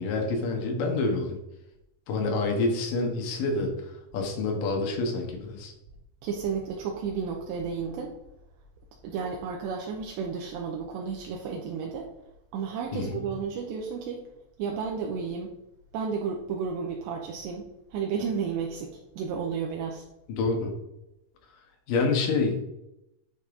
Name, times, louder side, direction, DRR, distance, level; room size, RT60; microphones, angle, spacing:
voice 1, 0.0-1.4 2.1-5.7 12.9-13.2 20.3-20.7 21.9-22.6, left 3 dB, 60° left, 2 dB, 2.4 m, -27 dB
voice 2, 6.2-8.1 9.0-12.1 12.5-14.2 14.6-15.5 15.9-17.6 17.9-20.1, right 6 dB, 80° right, 0 dB, 2.8 m, -32 dB
10.5 x 5.4 x 3.8 m, 0.86 s
omnidirectional pair, 5.6 m